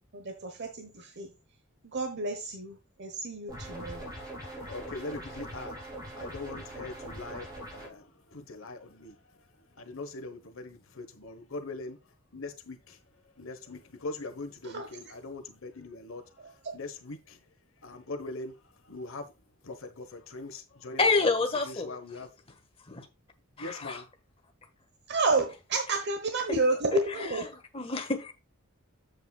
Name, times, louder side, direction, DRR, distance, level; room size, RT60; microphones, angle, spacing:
voice 1, 0.1-1.3 1.8-4.1 14.7-14.9 16.6-16.7 25.1-27.5, right 2 dB, 55° right, 1.1 m, -30 dB
sound 1, 3.5-7.9, right 1 dB, 20° right, 5.0 m, -42 dB
voice 2, 4.6-5.8 6.1-9.5 9.7-12.0 12.3-13.0 13.3-17.4 17.8-19.3 19.6-21.3 21.6-22.3 23.6-24.1, left 2 dB, 70° left, 1.2 m, -41 dB
voice 3, 21.0-21.9 22.9-23.0 23.6-24.0 27.7-28.3, left 3 dB, 25° left, 1.5 m, -27 dB
9.6 x 7.8 x 2.3 m
head